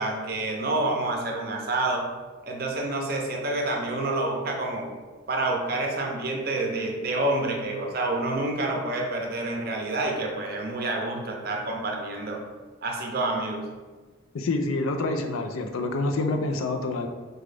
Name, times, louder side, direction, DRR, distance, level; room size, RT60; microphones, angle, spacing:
voice 1, 0.0-2.1 2.4-4.9 5.3-12.4 12.8-13.6, right 2 dB, 45° right, 1 dB, 0.5 m, -28 dB
voice 2, 14.3-17.1, left 2 dB, 85° left, 4 dB, 0.4 m, -27 dB
5.0 x 2.3 x 3.3 m, 1.4 s
head